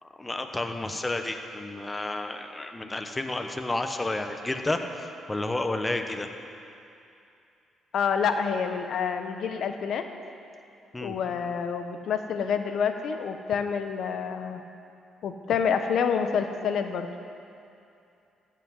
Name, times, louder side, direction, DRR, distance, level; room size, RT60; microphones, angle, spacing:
voice 1, 0.0-6.3 10.9-11.2, left 2 dB, 15° left, 6 dB, 0.9 m, -31 dB
voice 2, 7.9-10.0 11.0-14.6 15.2-17.1, left 6 dB, 70° left, 7 dB, 0.9 m, -28 dB
14.5 x 5.9 x 7.9 m, 2.6 s
cardioid pair, 90°, 0 cm